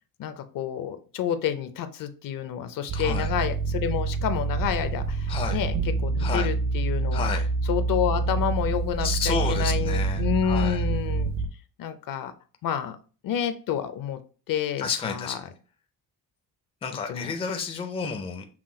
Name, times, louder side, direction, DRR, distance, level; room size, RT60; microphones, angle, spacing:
voice 1, 0.2-7.3 7.7-11.3 11.8-12.3 12.6-13.0 13.2-14.2 14.5-15.4 17.1-17.3, left 9 dB, 60° left, 9 dB, 0.6 m, -29 dB
voice 2, 2.9-3.3 5.3-5.6 6.2-6.5 7.1-7.5 9.0-10.8 14.8-15.4 16.8-18.5, left 5 dB, 15° left, 6 dB, 0.4 m, -31 dB
sound 1, 2.9-11.5, right 4 dB, 50° right, 0.6 m, -27 dB
5.9 x 2.2 x 3.7 m, 0.38 s
cardioid pair, 160°, 37 cm